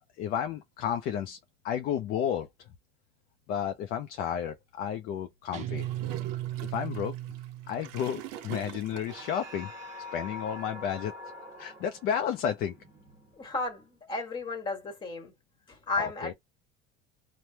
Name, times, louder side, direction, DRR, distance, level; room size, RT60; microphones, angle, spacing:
voice 1, 0.2-1.4 1.6-2.7 3.5-5.9 6.6-7.1 7.7-9.7 10.1-11.1 11.6-12.8 16.0-16.3, left 9 dB, 45° left, 0.4 m, -32 dB
Guitar, 5.5-8.1, right 13 dB, 35° right, 0.6 m, -36 dB
Gurgling / Toilet flush, 5.8-9.5, right 11 dB, 70° right, 0.7 m, -44 dB
sound 1, 9.1-13.9, left 2 dB, 15° right, 1.4 m, -45 dB
voice 2, 13.4-15.3 15.7-16.3, left 2 dB, 25° left, 1.4 m, -34 dB
3.2 x 2.1 x 2.7 m
cardioid pair, 145°, 21 cm